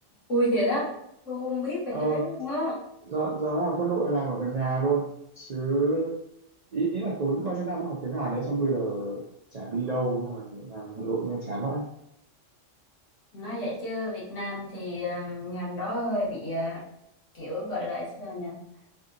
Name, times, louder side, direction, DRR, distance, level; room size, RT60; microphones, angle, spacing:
voice 1, 0.3-0.9 1.2-2.8 13.3-16.8 17.3-18.6, left 1 dB, 75° left, -5 dB, 1.5 m, -30 dB
voice 2, 1.9-2.2 3.1-5.1 5.4-6.1 6.7-9.2 9.5-11.8, right 3 dB, 55° right, -5 dB, 0.5 m, -28 dB
3.4 x 2.7 x 2.5 m, 0.75 s
omnidirectional pair, 1.3 m